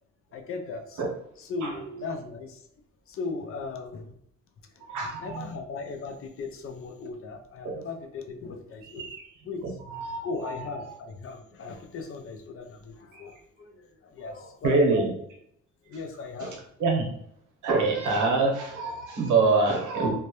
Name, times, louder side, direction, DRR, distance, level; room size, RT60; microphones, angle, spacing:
voice 1, 0.3-1.0 1.4-2.6 3.1-4.2 4.8-4.9 5.2-9.0 9.4-9.8 10.2-15.1 15.9-16.6, left 4 dB, 45° left, 4 dB, 0.4 m, -37 dB
voice 2, 4.9-5.4 7.6-7.8 9.0-9.2 9.9-10.6 13.1-13.2 14.6-15.1 16.4-16.5 16.8-17.1 17.6-20.1, right 3 dB, 80° right, 1 dB, 0.8 m, -25 dB
2.1 x 2.0 x 2.8 m, 0.70 s
cardioid pair, 90°, 30 cm